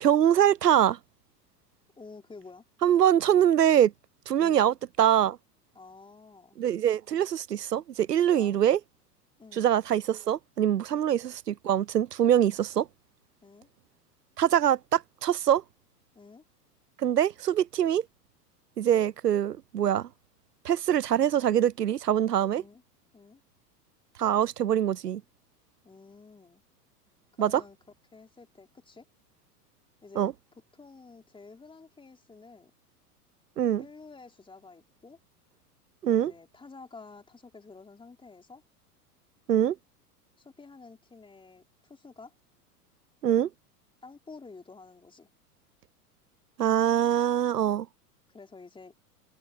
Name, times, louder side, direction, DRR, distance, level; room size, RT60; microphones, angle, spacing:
voice 1, 0.0-1.0 2.8-3.9 4.3-5.4 6.6-8.8 9.6-12.9 14.4-15.6 17.0-18.0 18.8-20.1 20.6-22.6 24.2-25.2 27.4-27.6 30.2-30.3 33.6-33.8 36.0-36.3 39.5-39.8 43.2-43.5 46.6-47.9, right 10 dB, 85° right, 0.6 m, -24 dB
voice 2, 2.0-2.7 4.4-4.7 5.7-6.6 8.3-8.6 9.4-9.7 10.9-11.0 13.4-13.7 16.1-16.4 22.5-22.8 23.1-23.4 25.8-26.6 27.3-27.8 28.1-29.1 30.0-30.3 30.7-32.7 33.8-35.2 36.1-38.6 40.4-42.3 44.0-45.3 48.3-48.9, left 4 dB, 10° left, 4.1 m, -50 dB
figure-of-eight pair, 90°, 47 cm